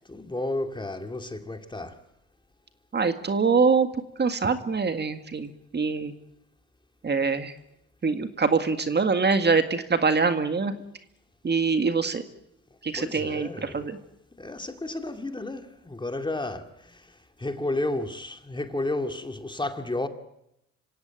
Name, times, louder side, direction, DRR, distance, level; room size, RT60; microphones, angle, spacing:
voice 1, 0.1-2.0 12.9-13.9 14.4-20.1, left 2 dB, 15° left, 2.3 m, -32 dB
voice 2, 2.9-3.9 4.2-6.1 7.0-7.5 8.0-10.7 11.4-12.2 12.8-14.0, right 4 dB, 35° right, 1.9 m, -24 dB
26.5 x 16.5 x 9.2 m
cardioid pair, 90°, 30 cm